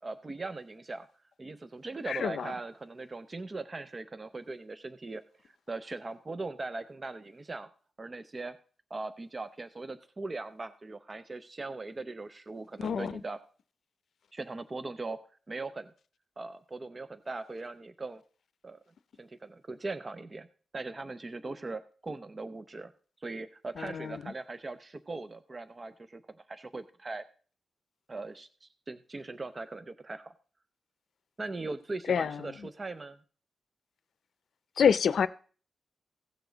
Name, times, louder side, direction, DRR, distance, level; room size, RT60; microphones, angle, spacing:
voice 1, 0.0-1.1 1.4-7.7 8.0-8.6 8.9-13.4 14.3-15.2 15.5-15.9 16.4-18.2 18.6-18.8 19.2-20.5 20.7-22.9 23.2-26.2 26.5-27.2 28.1-30.3 31.4-33.2, right 3 dB, 25° right, 0.5 m, -40 dB
voice 2, 2.1-2.5 12.8-13.1 23.8-24.2 32.1-32.5 34.8-35.3, left 7 dB, 70° left, 0.5 m, -27 dB
16.0 x 7.0 x 3.9 m
wide cardioid pair, 140°, 0 cm